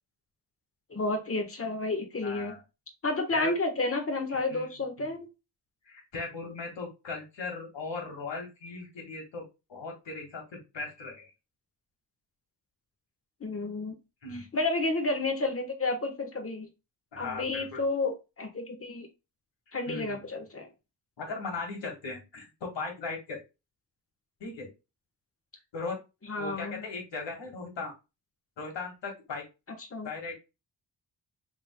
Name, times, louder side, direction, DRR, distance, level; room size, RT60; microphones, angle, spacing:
voice 1, 0.9-2.6 3.0-5.3 13.4-14.0 14.5-16.7 17.2-19.1 19.7-20.7 26.2-26.9 29.9-30.1, left 2 dB, 30° left, 4 dB, 1.3 m, -31 dB
voice 2, 2.2-2.6 3.3-3.5 4.5-4.7 5.9-11.3 14.2-14.5 17.1-17.8 19.9-20.2 21.2-23.4 24.4-24.7 25.7-26.0 26.4-27.9 28.6-29.4 30.0-30.3, left 3 dB, 85° left, 0 dB, 2.0 m, -38 dB
6.0 x 3.5 x 2.2 m, 0.26 s
wide cardioid pair, 115°, 43 cm